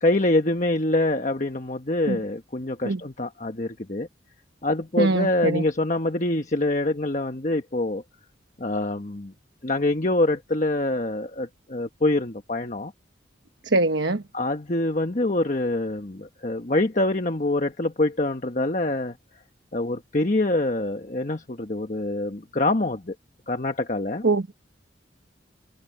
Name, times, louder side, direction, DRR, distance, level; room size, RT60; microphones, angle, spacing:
voice 1, 0.0-4.1 4.6-8.0 8.6-9.3 9.6-12.9 14.3-19.2 19.7-23.1 23.5-24.2, left 2 dB, 40° left, 1.2 m, -25 dB
voice 2, 5.0-5.6 13.6-14.2 24.2-24.4, right 2 dB, 80° right, 1.1 m, -22 dB
head